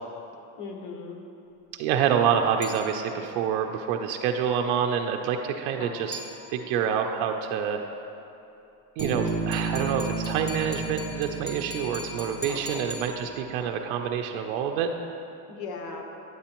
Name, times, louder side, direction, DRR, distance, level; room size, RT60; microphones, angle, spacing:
voice 1, 0.6-1.2 5.8-6.0 12.5-12.9 15.5-16.0, left 4 dB, 75° left, 2 dB, 1.2 m, -38 dB
voice 2, 1.7-6.2 6.5-7.8 9.0-14.9, right 8 dB, 65° right, 3 dB, 0.5 m, -27 dB
sound 1, 2.6-3.4 6.1-6.9 9.0-13.7, left 3 dB, 25° left, 1.3 m, -41 dB
Bass guitar, 9.0-12.8, right 4 dB, 35° right, 0.8 m, -32 dB
9.3 x 7.9 x 2.9 m, 2.8 s
cardioid pair, 145°, 41 cm